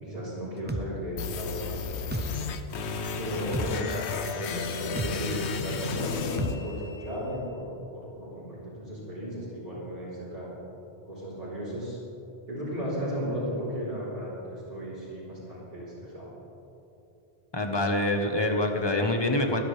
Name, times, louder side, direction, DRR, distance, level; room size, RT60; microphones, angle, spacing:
voice 1, 0.0-2.3 3.2-10.5 11.1-12.0 12.5-16.3, equal, 40° right, -12 dB, 4.1 m, -35 dB
sound 1, 0.7-0.9 2.1-2.3 3.5-3.7 5.0-5.1 6.4-6.6, right 2 dB, 15° right, 0.4 m, -31 dB
sound 2, 1.2-7.2, left 5 dB, 85° left, 1.0 m, -33 dB
voice 2, 17.5-19.6, left 1 dB, 25° left, 4 dB, 1.2 m, -26 dB
23.5 x 11.0 x 3.4 m, 2.9 s
omnidirectional pair, 1.1 m